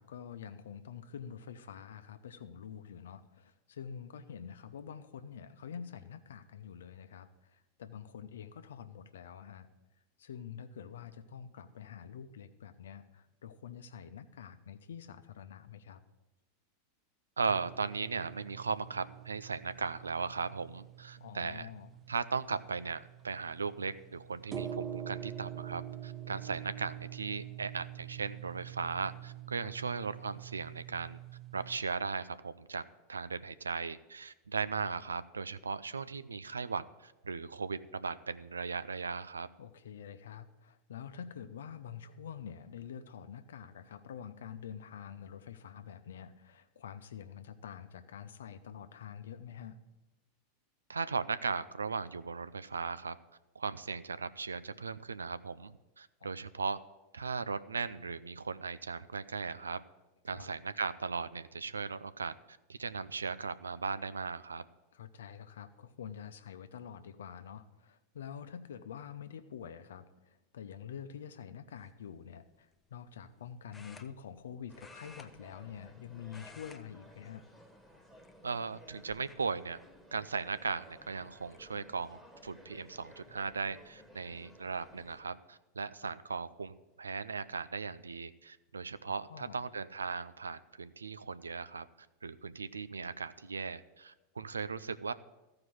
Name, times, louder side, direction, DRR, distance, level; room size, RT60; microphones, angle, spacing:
voice 1, 0.0-9.7 10.2-16.0 21.2-21.9 29.6-29.7 39.6-49.8 56.2-56.3 60.3-60.5 64.9-77.4 86.0-86.1 89.1-89.6, left 8 dB, 75° left, 10 dB, 0.7 m, -47 dB
voice 2, 17.4-21.7 22.1-31.2 31.5-32.8 33.1-39.5 50.9-53.2 53.5-56.8 57.1-59.8 60.2-64.6 78.4-79.8 80.1-95.1, right 5 dB, 85° right, 14 dB, 0.4 m, -37 dB
sound 1, 17.5-31.8, right 11 dB, 30° right, 0.5 m, -46 dB
sound 2, 71.8-72.1 73.7-74.5 74.8-76.0 76.2-76.8 77.1-77.4 78.1-78.7 79.3-79.4 80.8-80.9 81.2-81.6, left 3 dB, 15° left, 0.7 m, -55 dB
sound 3, 74.7-85.2, equal, 5° right, 1.5 m, -57 dB
14.0 x 4.9 x 7.7 m, 1.0 s
hypercardioid pair, 90°, 0 cm